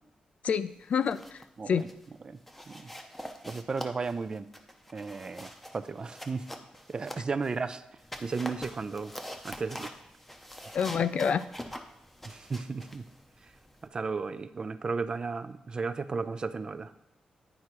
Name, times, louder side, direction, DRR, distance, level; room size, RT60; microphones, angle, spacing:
voice 1, 0.4-1.8 10.7-11.4, left 7 dB, 65° left, 14 dB, 0.4 m, -28 dB
sound 1, 0.8-1.5 1.8-2.1 2.5-7.6 8.0-13.9, equal, 5° left, 0.7 m, -45 dB
voice 2, 3.5-4.5 4.9-6.5 6.9-7.8 8.2-9.2 9.4-9.9 12.2-13.1 13.4-13.5 13.9-16.9, right 4 dB, 35° right, 13 dB, 0.4 m, -34 dB
9.8 x 4.8 x 4.5 m, 0.86 s
wide cardioid pair, 130°, 2 cm